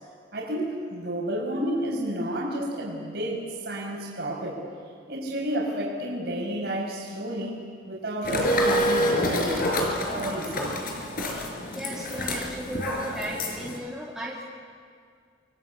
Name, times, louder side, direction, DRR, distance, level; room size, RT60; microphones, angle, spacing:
voice 1, 0.3-4.6 5.1-7.6 7.8-9.7 10.1-10.7, right 1 dB, 60° right, -2 dB, 6.5 m, -31 dB
sound 1, 8.2-13.8, left 1 dB, 50° left, 5.3 m, -27 dB
voice 2, 11.3-14.4, right 1 dB, 5° right, -5 dB, 3.2 m, -36 dB
28.5 x 24.5 x 8.5 m, 2.1 s
head